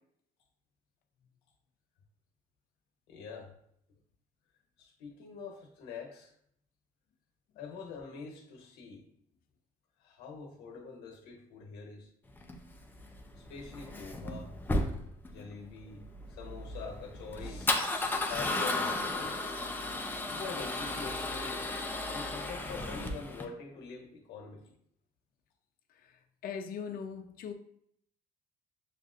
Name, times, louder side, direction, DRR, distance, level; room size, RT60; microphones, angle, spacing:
voice 1, 3.1-3.5 4.8-6.3 7.5-9.1 10.0-12.1 13.4-14.6 15.3-19.4 20.3-21.7 22.1-24.7, left 5 dB, 80° left, 1.1 m, -45 dB
Male speech man speaking / Car / Engine starting, 12.4-23.4, left 2 dB, 10° left, 0.5 m, -35 dB
voice 2, 17.8-18.3 26.0-27.5, left 6 dB, 60° left, 0.6 m, -42 dB
6.7 x 2.4 x 2.5 m
cardioid pair, 110°, 17 cm